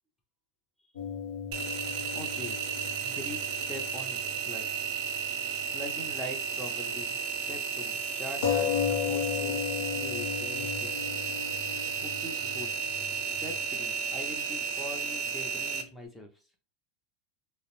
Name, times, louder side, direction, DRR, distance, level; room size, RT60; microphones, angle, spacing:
sound 1, 0.9-4.8 5.1-5.2 8.4-13.6, left 8 dB, 85° left, 0.5 m, -35 dB
Engine, 1.5-15.8, right 7 dB, 55° right, 0.6 m, -33 dB
voice 1, 1.8-2.6 3.0-4.7 5.7-7.2 7.5-9.7 9.9-10.9 12.0-12.8 13.3-16.4, left 1 dB, 5° left, 0.6 m, -43 dB
2.4 x 2.0 x 2.9 m
supercardioid pair, 140°, 0 cm